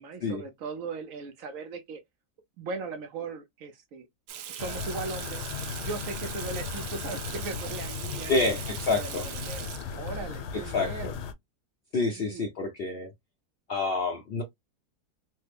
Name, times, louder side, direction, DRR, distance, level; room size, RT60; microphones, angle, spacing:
voice 1, 0.0-2.0 2.6-4.1 4.5-8.6 8.9-9.7 9.9-11.2 12.1-12.4, right 4 dB, 65° right, 0.9 m, -38 dB
Water tap faucet / Sink (filling or washing), 4.3-10.2, right 10 dB, 90° right, 1.2 m, -40 dB
sound 1, 4.6-11.3, left 6 dB, 90° left, 1.2 m, -37 dB
voice 2, 8.3-9.2 10.5-11.1 11.9-13.1 13.7-14.4, left 3 dB, 65° left, 0.6 m, -28 dB
3.2 x 2.0 x 3.3 m
omnidirectional pair, 1.7 m